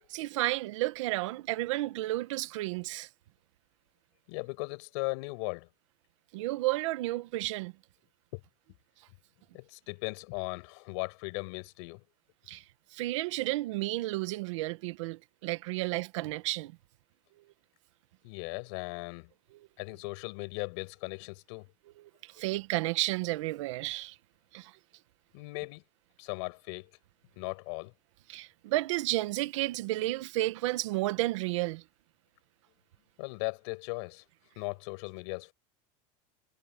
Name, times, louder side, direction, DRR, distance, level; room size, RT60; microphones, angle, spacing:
voice 1, 0.1-3.1 6.3-7.7 12.5-12.6 12.9-16.7 22.0-24.1 24.5-24.7 28.3-31.8, right 18 dB, 80° right, 1.4 m, -32 dB
voice 2, 4.3-5.7 8.3-8.4 9.5-12.0 18.2-19.3 19.8-21.7 25.3-25.8 26.2-26.9 27.4-27.9 33.2-34.2 34.5-35.5, left 29 dB, 60° left, 6.7 m, -38 dB
supercardioid pair, 170°, 16 cm